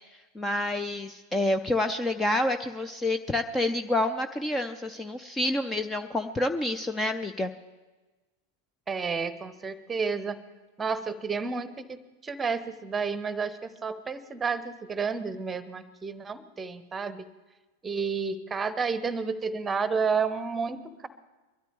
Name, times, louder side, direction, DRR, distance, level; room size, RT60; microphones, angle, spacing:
voice 1, 0.4-7.5, left 1 dB, 10° left, 8 dB, 0.5 m, -28 dB
voice 2, 8.9-10.4 10.8-17.3 17.8-21.1, right 5 dB, 15° right, 14 dB, 0.9 m, -31 dB
23.0 x 13.0 x 3.4 m, 1.2 s
figure-of-eight pair, 90°, 0 cm